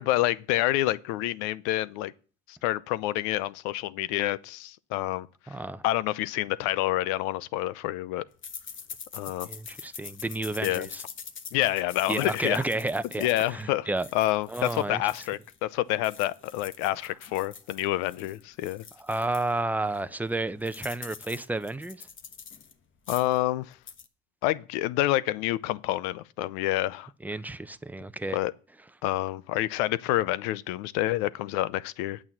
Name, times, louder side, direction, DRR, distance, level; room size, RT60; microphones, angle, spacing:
voice 1, 0.0-2.1 2.5-5.3 5.8-8.2 9.1-9.5 10.6-10.9 11.5-12.6 13.2-18.8 23.1-23.8 24.4-27.1 28.3-28.5 29.0-32.2, left 15 dB, 80° left, 0.6 m, -28 dB
voice 2, 5.5-5.8 9.5-11.0 12.1-14.1 14.5-15.0 19.0-22.1 27.2-28.4, right 2 dB, 5° right, 0.6 m, -31 dB
sound 1, 8.4-15.6 15.9-19.5 19.9-20.0 20.3-22.7 23.0-23.4 23.7-24.1, left 6 dB, 40° left, 1.3 m, -44 dB
8.8 x 6.3 x 7.3 m
supercardioid pair, 85°, 29 cm